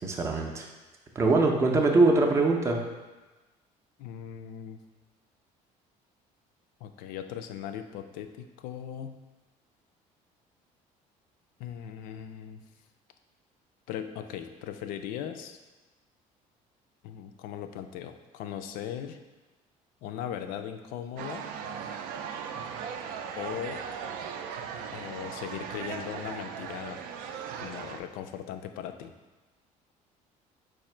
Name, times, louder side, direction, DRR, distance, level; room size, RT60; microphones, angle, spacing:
voice 1, 0.0-0.7 1.2-2.8, right 3 dB, 20° right, 1 dB, 0.4 m, -23 dB
voice 2, 4.0-4.8 6.8-9.2 11.6-12.6 13.9-15.6 17.0-19.2 20.0-21.5 23.4-23.8 24.9-27.0 27.6-29.1, left 9 dB, 85° left, 7 dB, 0.4 m, -38 dB
sound 1, 21.2-28.0, right 7 dB, 85° right, 0.4 m, -38 dB
4.8 x 2.5 x 4.3 m, 1.2 s
cardioid pair, 175°, 14 cm